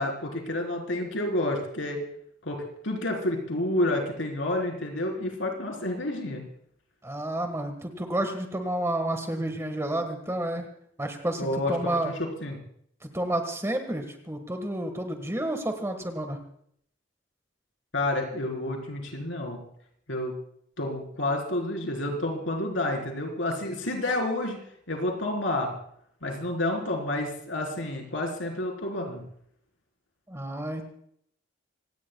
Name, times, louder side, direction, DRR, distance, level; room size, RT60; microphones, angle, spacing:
voice 1, 0.0-2.0 2.4-6.4 11.4-12.6 17.9-19.6 20.1-20.3 20.8-24.6 24.9-25.7 26.2-29.2, left 1 dB, 75° left, 1 dB, 4.2 m, -29 dB
voice 2, 7.0-10.7 11.0-12.1 13.0-16.4 30.3-30.9, right 1 dB, 15° right, 6 dB, 1.6 m, -30 dB
26.0 x 18.5 x 2.3 m, 0.68 s
head